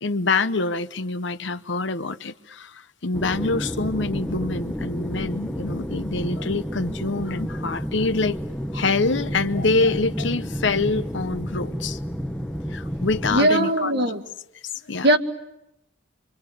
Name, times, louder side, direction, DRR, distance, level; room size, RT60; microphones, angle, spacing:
voice 1, 0.0-8.4 8.7-12.0 12.7-13.9 14.9-15.1, left 3 dB, 65° left, 1.0 m, -25 dB
sound 1, 3.1-13.4, equal, 5° left, 1.2 m, -30 dB
voice 2, 13.3-14.2 15.0-15.2, right 1 dB, 60° right, 1.8 m, -19 dB
26.5 x 25.0 x 8.0 m
head